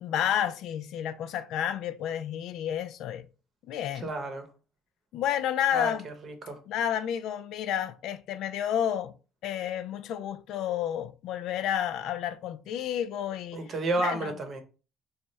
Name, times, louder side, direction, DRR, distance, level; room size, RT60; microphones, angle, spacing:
voice 1, 0.0-3.3 3.7-4.1 5.1-6.1 6.7-9.1 9.4-13.6 14.0-14.3, left 10 dB, 65° left, 0.3 m, -30 dB
voice 2, 3.9-4.5 5.7-6.6 13.5-14.6, right 2 dB, 40° right, 0.8 m, -32 dB
3.2 x 2.4 x 4.0 m
cardioid pair, 120°, 0 cm